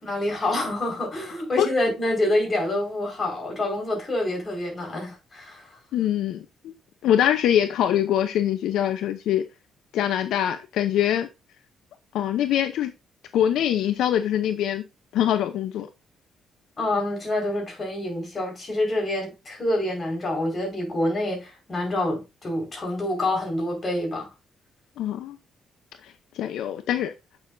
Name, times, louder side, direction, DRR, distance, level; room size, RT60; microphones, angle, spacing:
voice 1, 0.0-5.7 16.8-24.3, left 1 dB, 30° left, 4.7 m, -27 dB
voice 2, 5.9-6.7 7.0-9.4 9.9-11.3 12.1-12.9 13.3-14.8 15.1-15.9 25.0-25.4 26.0-27.1, left 10 dB, 80° left, 0.6 m, -23 dB
7.9 x 6.7 x 2.6 m
cardioid pair, 90°, 0 cm